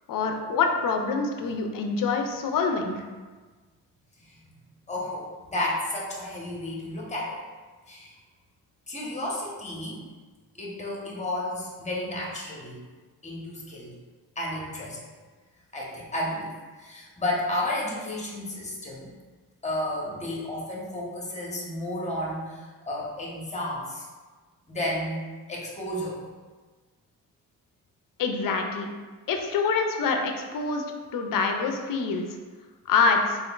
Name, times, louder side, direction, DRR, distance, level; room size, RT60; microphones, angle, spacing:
voice 1, 0.1-3.0 28.2-28.9 29.3-30.8 31.1-32.3 32.9-33.4, left 4 dB, 45° left, 4 dB, 0.5 m, -25 dB
voice 2, 4.9-7.4 7.9-8.1 8.9-10.0 10.5-12.8 13.2-13.9 14.4-15.0 15.7-19.1 19.6-24.1 24.7-26.2, left 1 dB, 15° left, -3 dB, 1.0 m, -32 dB
3.5 x 2.5 x 2.4 m, 1.4 s
hypercardioid pair, 50°, 47 cm